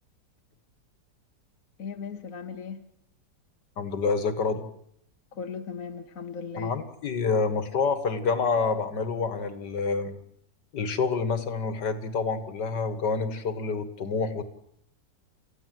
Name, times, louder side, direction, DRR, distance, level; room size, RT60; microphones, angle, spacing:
voice 1, 1.8-2.8 5.3-6.7, left 6 dB, 50° left, 6 dB, 1.6 m, -37 dB
voice 2, 3.8-4.7 6.6-10.2 10.7-14.4, left 4 dB, 70° left, 11 dB, 2.2 m, -27 dB
29.5 x 15.0 x 7.7 m, 0.71 s
omnidirectional pair, 1.9 m